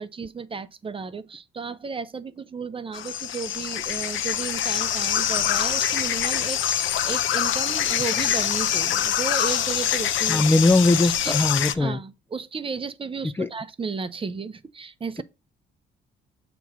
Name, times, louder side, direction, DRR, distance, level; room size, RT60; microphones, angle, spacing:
voice 1, 0.0-10.5 11.0-11.3 11.8-15.2, right 5 dB, 25° right, 0.6 m, -34 dB
sound 1, 2.9-11.7, left 10 dB, 75° left, 0.7 m, -25 dB
voice 2, 10.3-12.0 13.4-13.5, left 2 dB, 10° left, 0.3 m, -20 dB
6.9 x 3.0 x 5.9 m
cardioid pair, 90°, 20 cm